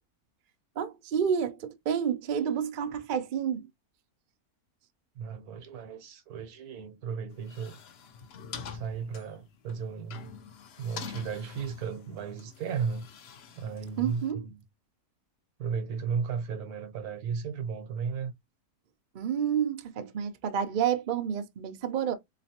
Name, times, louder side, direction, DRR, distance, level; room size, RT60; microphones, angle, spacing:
voice 1, 0.8-3.7 14.0-14.4 19.1-22.1, right 8 dB, 60° right, 0.5 m, -29 dB
voice 2, 5.2-7.8 8.7-10.3 10.8-13.1 13.6-14.6 15.6-18.3, right 6 dB, 80° right, 1.3 m, -35 dB
sound 1, 7.3-14.3, left 6 dB, 55° left, 0.7 m, -45 dB
4.0 x 3.0 x 2.8 m
omnidirectional pair, 1.6 m